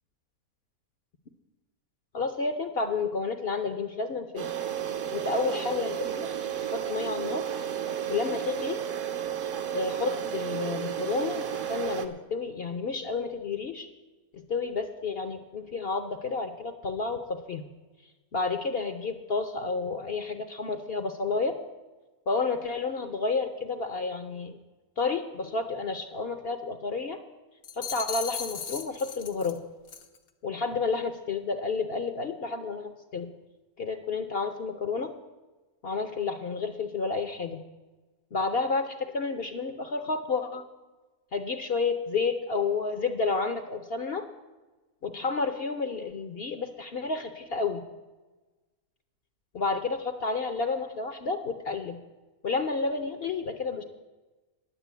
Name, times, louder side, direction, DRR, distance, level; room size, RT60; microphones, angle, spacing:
voice 1, 2.1-4.5 5.1-6.3 6.6-7.5 8.1-8.8 9.7-13.9 14.3-17.6 18.3-21.6 22.3-24.6 25.0-27.2 27.8-29.6 30.4-33.3 33.8-35.1 35.8-37.6 38.3-40.6 41.3-44.3 45.0-47.8 49.5-52.0 52.4-53.8, left 4 dB, 50° left, 7 dB, 0.8 m, -30 dB
sound 1, 4.4-12.1, right 9 dB, 60° right, 1.1 m, -32 dB
sound 2, 27.6-29.6 29.9-30.2, left 7 dB, 80° left, 1.5 m, -37 dB
9.8 x 9.0 x 8.1 m, 1.2 s
omnidirectional pair, 1.5 m